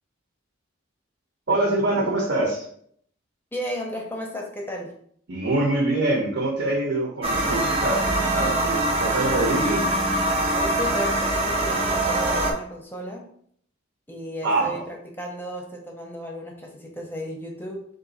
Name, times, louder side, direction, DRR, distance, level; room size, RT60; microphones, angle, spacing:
voice 1, 1.5-2.6 5.3-9.9 14.4-14.8, right 2 dB, 65° right, -2 dB, 0.9 m, -24 dB
voice 2, 3.5-4.9 10.5-13.2 14.1-17.9, equal, 10° left, 0 dB, 0.7 m, -34 dB
sound 1, 7.2-12.5, right 1 dB, 30° right, 0.6 m, -23 dB
3.8 x 2.7 x 4.0 m, 0.63 s
head